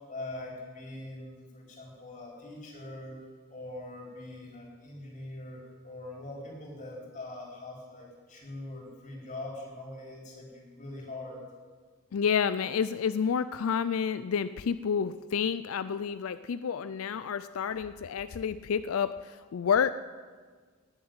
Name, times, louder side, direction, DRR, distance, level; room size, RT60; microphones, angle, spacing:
voice 1, 0.1-3.2 3.5-11.4, left 2 dB, 35° left, -1 dB, 4.6 m, -42 dB
voice 2, 12.1-19.9, left 7 dB, 85° left, 14 dB, 0.4 m, -29 dB
18.5 x 7.5 x 9.6 m, 1.5 s
head